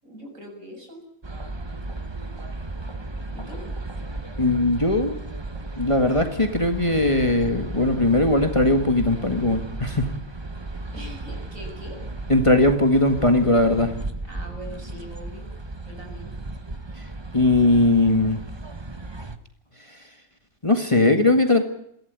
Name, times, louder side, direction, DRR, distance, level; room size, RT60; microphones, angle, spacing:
voice 1, 0.0-1.0 3.3-3.6 10.9-12.0 14.3-15.5 15.9-16.3, equal, 75° right, 2 dB, 7.7 m, -41 dB
sound 1, 1.2-19.4, right 2 dB, 20° right, 1.1 m, -35 dB
voice 2, 4.4-5.2 5.8-10.1 12.3-13.9 17.3-18.4 20.6-21.6, left 2 dB, 20° left, 6 dB, 1.8 m, -19 dB
23.0 x 16.0 x 9.6 m, 0.74 s
omnidirectional pair, 1.4 m